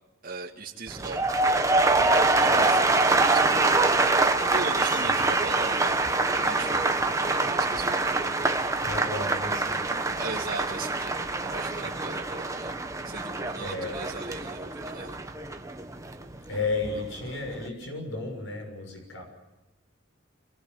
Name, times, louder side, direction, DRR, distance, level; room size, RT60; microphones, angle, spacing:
voice 1, 0.2-1.4 2.3-3.7 4.5-6.0 6.4-8.6 10.2-11.2 11.5-12.7 13.0-15.2, right 4 dB, 45° right, -2 dB, 2.2 m, -38 dB
sound 1, 0.9-16.9 17.2-17.7, right 3 dB, 15° right, 1.3 m, -25 dB
voice 2, 2.4-2.9 4.9-5.2 8.8-9.8 13.6-14.0 16.5-19.2, left 3 dB, 75° left, 4 dB, 6.5 m, -33 dB
25.5 x 19.5 x 9.6 m, 1.0 s
head